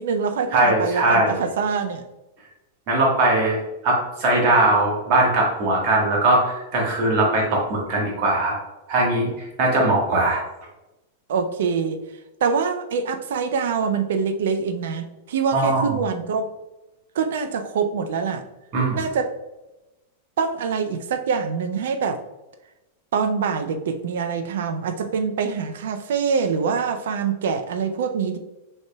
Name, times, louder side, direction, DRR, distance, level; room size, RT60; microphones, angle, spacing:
voice 1, 0.0-2.0 11.3-12.0 12.4-16.5 17.1-18.4 18.9-19.4 20.4-22.2 23.1-28.4, right 5 dB, 60° right, 8 dB, 0.4 m, -24 dB
voice 2, 0.5-1.4 2.9-3.6 3.8-8.6 8.9-10.4 15.5-15.9 18.7-19.0, right 2 dB, 45° right, -2 dB, 1.4 m, -20 dB
6.2 x 3.3 x 2.2 m, 1.0 s
figure-of-eight pair, 95°, 0 cm